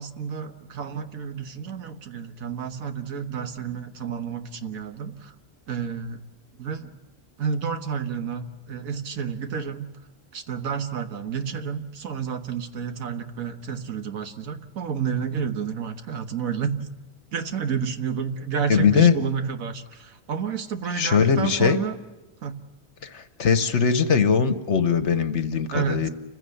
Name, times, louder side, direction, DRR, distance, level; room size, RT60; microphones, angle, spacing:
voice 1, 0.0-5.3 5.7-6.2 6.6-6.9 7.4-9.9 10.3-16.9 17.3-22.0 22.4-22.6 25.7-26.1, right 6 dB, 80° right, 8 dB, 1.6 m, -30 dB
voice 2, 18.7-19.1 20.9-21.8 23.0-26.1, left 6 dB, 60° left, 11 dB, 1.3 m, -20 dB
28.5 x 15.5 x 7.9 m, 1.1 s
omnidirectional pair, 1.4 m